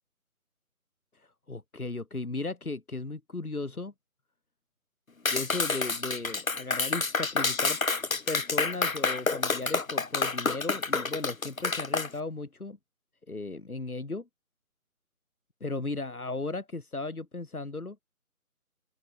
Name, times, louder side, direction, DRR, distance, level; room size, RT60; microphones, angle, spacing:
voice 1, 1.1-3.9 5.3-7.8 8.3-12.8 13.3-14.3 15.6-18.0, left 3 dB, 80° left, 2.2 m, -36 dB
Clapping, 5.3-12.1, left 4 dB, 65° left, 2.0 m, -28 dB
open air
figure-of-eight pair, 155°, 44 cm